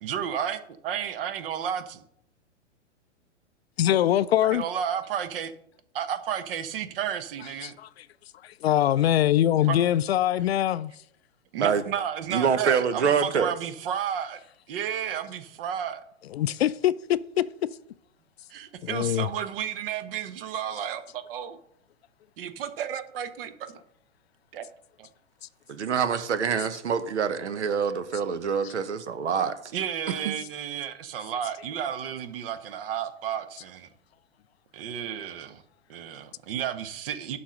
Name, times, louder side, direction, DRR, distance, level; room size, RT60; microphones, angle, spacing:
voice 1, 0.0-0.6 0.8-2.0 4.4-5.5 5.9-7.8 9.6-9.8 11.5-14.4 14.7-16.0 18.5-21.6 22.4-23.8 24.5-24.6 25.0-25.1 29.7-33.9 34.7-35.6 35.9-37.4, right 9 dB, 50° right, 1.1 m, -32 dB
voice 2, 3.8-4.6 7.6-7.9 8.6-10.9 16.3-16.9 17.4-17.5 18.8-19.3, left 12 dB, 55° left, 0.5 m, -23 dB
voice 3, 12.3-13.5 25.7-29.6 30.1-30.3, right 6 dB, 70° right, 1.2 m, -26 dB
11.0 x 4.3 x 6.4 m
figure-of-eight pair, 115°, 36 cm